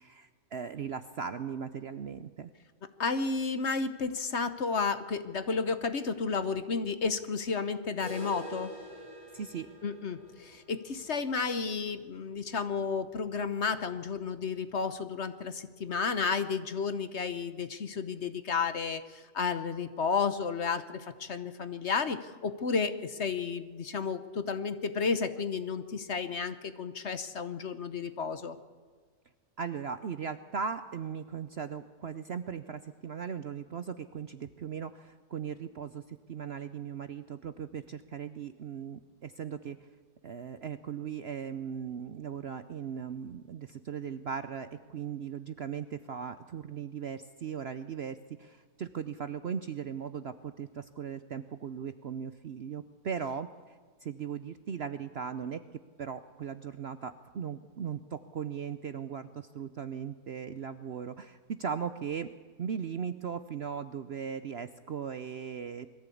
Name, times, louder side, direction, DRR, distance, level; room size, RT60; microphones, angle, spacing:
voice 1, 0.0-2.5 9.3-9.7 29.6-39.9 40.2-55.6 56.0-62.3 62.6-65.9, right 7 dB, 55° right, 11 dB, 0.7 m, -38 dB
voice 2, 3.0-8.7 9.8-28.6, left 5 dB, 50° left, 11 dB, 1.2 m, -32 dB
sound 1, 8.0-13.8 14.1-14.2 14.6-14.7 15.2-15.3 16.1-16.2, right 1 dB, 10° left, 6.9 m, -48 dB
21.5 x 14.5 x 8.5 m, 1.5 s
omnidirectional pair, 1.7 m